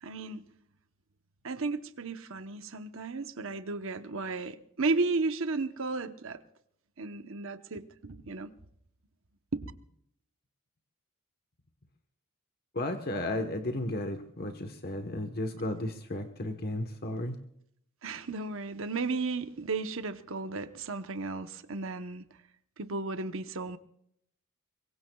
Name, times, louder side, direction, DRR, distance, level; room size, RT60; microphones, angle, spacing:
voice 1, 0.0-0.5 1.4-6.4 7.0-8.5 9.5-9.6 15.6-15.7 18.0-22.2 22.8-23.8, right 3 dB, 60° right, 1.0 m, -34 dB
voice 2, 12.7-17.4, left 1 dB, 45° left, 1.2 m, -34 dB
24.5 x 23.0 x 2.3 m
head